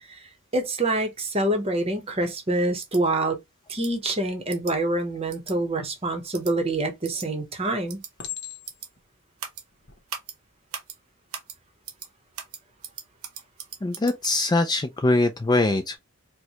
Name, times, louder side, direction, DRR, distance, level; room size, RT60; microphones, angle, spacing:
voice 1, 0.5-3.4 3.7-8.0, right 2 dB, 25° right, 0.8 m, -26 dB
sound 1, 2.8-3.0 3.7-3.9 4.5-4.7 5.3-5.5 6.3-6.5 7.0-7.3 7.9-8.1 8.6-8.9 9.4-9.6 10.1-10.3 10.7-11.0 11.3-11.6 11.8-12.1 12.3-14.4, right 7 dB, 85° right, 0.8 m, -38 dB
Chink clink, 6.7-7.2 8.2-9.0 9.7-10.0, left 11 dB, 50° left, 1.0 m, -38 dB
voice 2, 13.8-16.0, left 2 dB, 20° left, 0.3 m, -22 dB
4.4 x 2.1 x 2.8 m
head